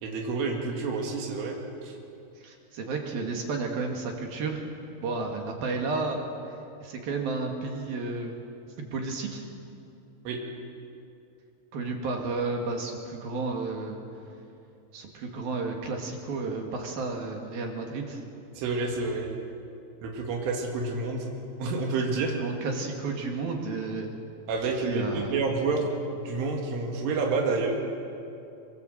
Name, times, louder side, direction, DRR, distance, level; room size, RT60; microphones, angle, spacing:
voice 1, 0.0-1.6 1.8-2.0 10.3-10.4 18.6-19.3 20.0-21.3 21.6-22.3 24.5-25.9 26.1-27.8, right 3 dB, 85° right, 1 dB, 4.7 m, -29 dB
voice 2, 2.4-4.6 5.0-6.2 6.5-8.3 8.8-9.4 11.7-14.0 14.9-18.2 22.4-24.1 24.9-25.4, right 3 dB, 55° right, 2 dB, 3.6 m, -32 dB
23.5 x 23.0 x 7.9 m, 2.6 s
omnidirectional pair, 5.4 m